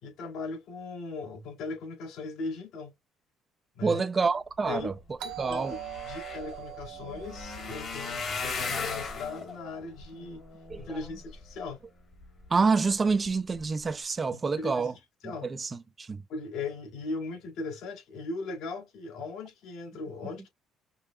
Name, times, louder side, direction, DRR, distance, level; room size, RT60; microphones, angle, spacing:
voice 1, 0.0-2.9 3.8-4.0 4.7-4.9 5.2-5.8 6.0-10.4 10.8-11.8 14.3-15.5 16.3-20.5, left 3 dB, 75° left, 2.3 m, -38 dB
voice 2, 3.8-4.9 5.4-5.7 10.7-11.0 12.5-14.9 15.6-15.7 16.0-16.2, right 4 dB, 25° right, 0.4 m, -27 dB
sound 1, 5.0-5.1 5.3-11.7 12.2-12.7 13.1-13.3 13.6-13.7, left 4 dB, 40° left, 1.4 m, -38 dB
Doorbell, 5.2-9.8, right 13 dB, 85° right, 1.0 m, -43 dB
5.2 x 2.1 x 2.2 m
cardioid pair, 120°, 0 cm